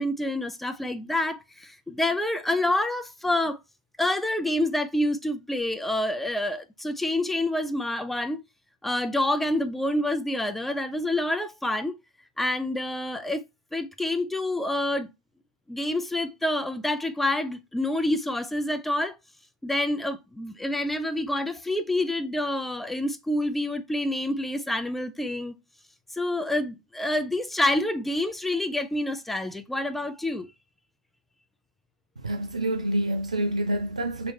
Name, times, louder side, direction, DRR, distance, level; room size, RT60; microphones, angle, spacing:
voice 1, 0.0-3.6 4.0-8.4 8.8-11.9 12.4-13.4 13.7-15.1 15.7-19.2 19.6-25.5 26.2-30.5, left 1 dB, 5° left, 0.3 m, -27 dB
voice 2, 32.2-34.3, right 1 dB, 85° right, 0.7 m, -27 dB
3.1 x 2.9 x 3.0 m
figure-of-eight pair, 100°, 4 cm